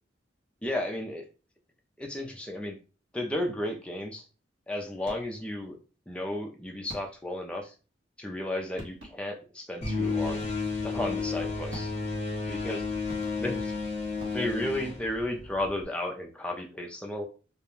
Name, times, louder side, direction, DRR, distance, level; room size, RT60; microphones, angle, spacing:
voice 1, 0.6-1.2 2.0-2.8 3.1-4.2 4.7-5.8 6.1-7.7 8.2-10.4 10.8-11.9 12.5-12.8 13.4-13.7 14.3-17.3, left 1 dB, 5° left, 2 dB, 0.3 m, -33 dB
sound 1, 5.0-5.5 6.9-7.4 8.4-8.5 8.8-9.4 10.4-10.9 11.7-12.3 13.1-13.7 14.2-14.9, equal, 60° right, 0.9 m, -47 dB
sound 2, 9.8-15.8, left 4 dB, 35° left, 0.7 m, -32 dB
2.4 x 2.1 x 3.0 m, 0.34 s
head